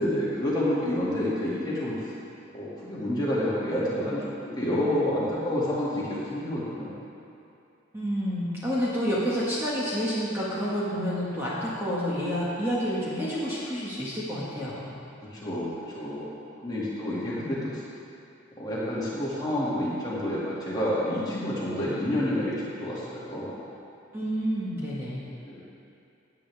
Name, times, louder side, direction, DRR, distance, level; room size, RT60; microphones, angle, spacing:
voice 1, 0.0-2.1 2.5-7.0 15.3-16.3 16.6-17.8 18.6-23.6 25.3-25.6, left 1 dB, 20° left, -8 dB, 2.2 m, -29 dB
voice 2, 7.9-15.0 17.4-17.6 24.1-25.2, equal, 10° right, -9 dB, 1.7 m, -29 dB
16.5 x 8.7 x 3.5 m, 2.7 s
head